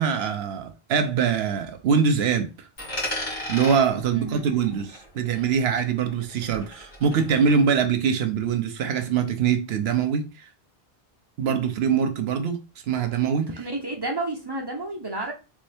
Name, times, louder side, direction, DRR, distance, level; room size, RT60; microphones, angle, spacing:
voice 1, 0.0-2.5 3.5-10.2 11.4-12.6 12.9-13.5, right 6 dB, 80° right, 0.9 m, -23 dB
Coin (dropping), 2.8-5.5 5.8-7.8, left 1 dB, 60° left, 1.9 m, -36 dB
voice 2, 4.1-4.4 13.6-15.3, right 2 dB, 30° right, 0.6 m, -30 dB
3.4 x 2.7 x 3.4 m
omnidirectional pair, 1.1 m